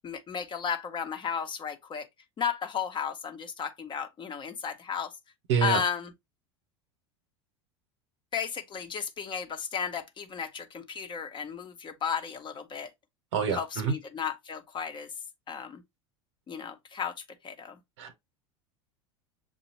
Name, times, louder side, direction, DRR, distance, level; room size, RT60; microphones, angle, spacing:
voice 1, 0.0-2.1 2.4-5.1 5.6-6.1 8.3-12.9 13.5-15.1 15.5-15.8 16.5-17.1 17.4-17.8, left 7 dB, 30° left, 1.0 m, -34 dB
voice 2, 5.5-5.8 13.3-13.9 18.0-18.2, right 7 dB, 70° right, 1.1 m, -27 dB
6.8 x 2.4 x 2.9 m
hypercardioid pair, 85°, 15 cm